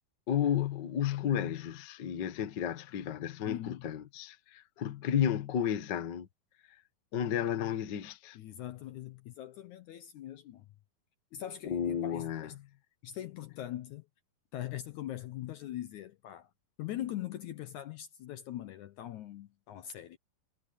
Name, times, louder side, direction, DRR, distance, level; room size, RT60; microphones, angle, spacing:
voice 1, 0.3-6.3 7.1-8.4 11.6-12.5, left 9 dB, 55° left, 1.2 m, -32 dB
voice 2, 3.4-3.8 8.3-10.7 11.3-12.5 13.0-14.1 14.5-16.5 16.8-20.2, left 12 dB, 70° left, 1.9 m, -41 dB
omnidirectional pair, 4.2 m